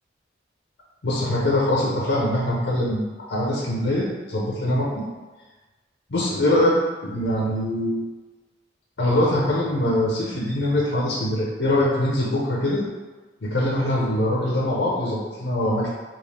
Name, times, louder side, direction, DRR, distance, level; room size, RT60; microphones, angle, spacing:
voice 1, 1.0-5.0 6.1-8.0 9.0-12.8 13.4-15.9, left 1 dB, 75° left, -5 dB, 0.7 m, -23 dB
3.7 x 2.5 x 3.3 m, 1.2 s
head